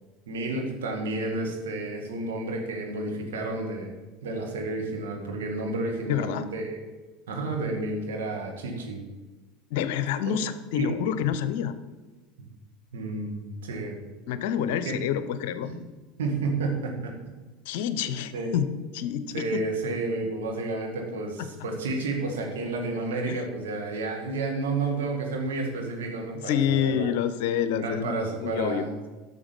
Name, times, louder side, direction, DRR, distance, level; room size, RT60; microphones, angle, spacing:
voice 1, 0.3-6.8 7.3-9.0 10.3-10.4 10.7-10.9 12.9-14.1 14.8-15.0 15.6-15.8 16.2-17.2 18.3-18.5 19.3-27.1 27.8-28.9, right 3 dB, 75° right, 1 dB, 2.1 m, -31 dB
voice 2, 6.1-6.4 9.7-11.7 14.3-15.7 17.7-18.7 18.9-19.6 23.3-23.4 26.4-28.9, left 9 dB, 65° left, 12 dB, 0.7 m, -27 dB
11.0 x 6.6 x 5.3 m, 1.2 s
hypercardioid pair, 75°, 0 cm